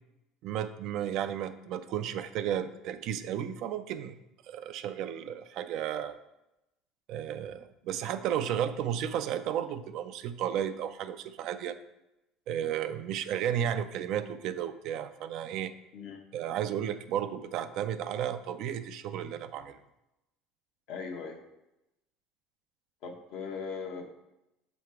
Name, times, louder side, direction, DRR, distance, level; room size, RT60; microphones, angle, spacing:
voice 1, 0.4-4.2 4.5-6.2 7.1-11.8 12.5-15.7 16.3-19.8, right 10 dB, 65° right, 10 dB, 0.4 m, -33 dB
voice 2, 20.9-21.4 23.0-24.1, left 5 dB, 70° left, 2 dB, 1.0 m, -39 dB
6.5 x 3.1 x 4.7 m, 0.92 s
supercardioid pair, 110°, 0 cm